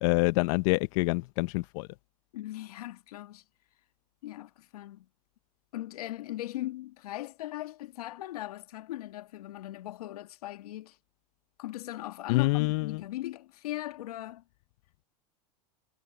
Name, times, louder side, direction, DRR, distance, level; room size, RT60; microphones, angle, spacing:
voice 1, 0.0-1.9 12.3-13.0, left 23 dB, 60° left, 0.8 m, -26 dB
voice 2, 2.3-3.4 4.2-5.1 5.7-11.0 11.6-14.4, left 15 dB, 80° left, 1.9 m, -39 dB
hypercardioid pair, 115°, 19 cm